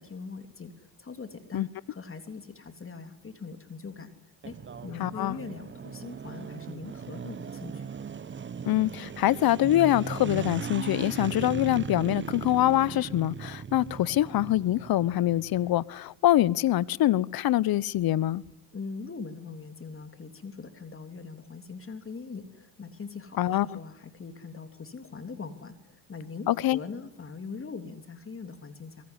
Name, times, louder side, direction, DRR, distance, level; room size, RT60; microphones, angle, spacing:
voice 1, 0.0-4.1 4.4-4.6 4.8-8.0 18.7-29.0, left 4 dB, 25° left, 3.1 m, -41 dB
sound 1, 4.4-15.8, right 6 dB, 25° right, 1.0 m, -38 dB
voice 2, 5.0-5.4 8.7-18.4 23.4-23.8 26.5-26.8, left 14 dB, 50° left, 1.1 m, -24 dB
25.0 x 22.5 x 9.9 m
hypercardioid pair, 75°, 48 cm